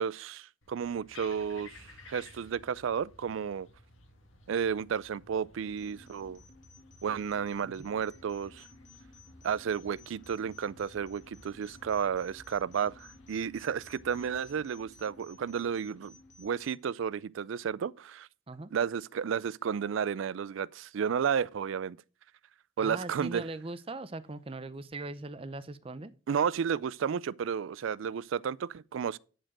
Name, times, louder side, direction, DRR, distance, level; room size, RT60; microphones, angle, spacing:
voice 1, 0.0-3.7 4.5-6.4 7.0-8.7 9.4-18.3 18.7-22.0 22.8-23.4 26.3-29.2, right 7 dB, 80° right, 0.4 m, -32 dB
sound 1, 0.6-16.6, left 2 dB, 90° left, 1.6 m, -56 dB
sound 2, 5.8-16.8, left 3 dB, 40° left, 1.9 m, -57 dB
voice 2, 22.8-26.1, right 2 dB, 30° right, 0.6 m, -40 dB
10.0 x 4.4 x 6.0 m
head